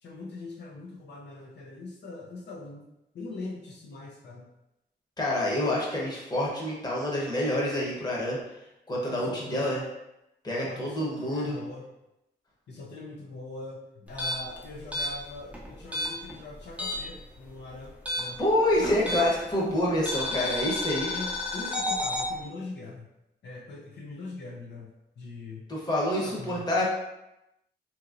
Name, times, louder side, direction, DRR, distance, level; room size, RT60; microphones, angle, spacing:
voice 1, 0.0-2.9 3.1-4.5 9.1-9.7 10.6-11.8 12.7-18.4 18.8-19.3 20.3-20.6 20.9-23.1 23.4-25.7 26.2-26.7, left 2 dB, 75° left, -2 dB, 0.5 m, -42 dB
voice 2, 5.2-8.4 8.9-9.8 10.4-11.6 18.4-21.1 25.7-26.8, left 1 dB, 25° left, -4 dB, 0.8 m, -27 dB
sound 1, 14.1-17.2 17.5-19.5 20.1-22.3, left 2 dB, 10° right, 0.5 m, -31 dB
2.8 x 2.7 x 2.5 m, 0.90 s
wide cardioid pair, 110°, 18 cm